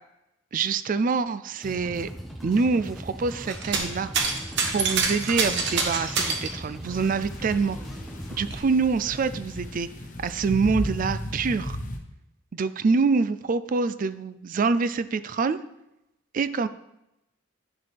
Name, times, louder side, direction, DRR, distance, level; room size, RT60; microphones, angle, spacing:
voice 1, 0.5-2.1 2.4-4.1 4.7-7.8 8.3-9.9 10.2-11.8 12.5-15.6 16.3-16.7, right 4 dB, 40° right, 14 dB, 0.3 m, -25 dB
sound 1, 1.5-8.6, equal, ahead, 0.9 m, -39 dB
sound 2, 3.5-6.5 7.6-7.7 8.2-9.2 10.0-10.1, right 4 dB, 55° right, 1.2 m, -26 dB
sound 3, 6.9-12.0, left 1 dB, 40° left, 0.9 m, -35 dB
10.0 x 6.7 x 3.4 m, 0.88 s
head